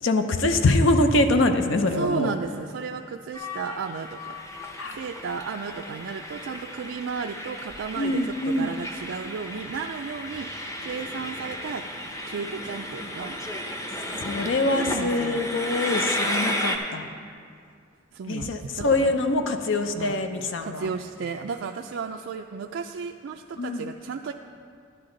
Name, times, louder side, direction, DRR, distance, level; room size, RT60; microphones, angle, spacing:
voice 1, 0.0-2.3 4.8-5.0 8.0-8.7 14.2-17.1 18.3-20.8 23.6-23.9, left 2 dB, 75° left, 7 dB, 0.6 m, -24 dB
voice 2, 1.9-4.4 4.9-10.5 10.8-11.8 12.3-13.4 14.4-15.5 18.1-19.1 19.9-20.2 20.6-24.3, right 5 dB, 75° right, 3 dB, 0.3 m, -34 dB
Train, 3.3-16.8, left 1 dB, 15° left, 0.7 m, -33 dB
11.0 x 9.9 x 3.9 m, 2.3 s
head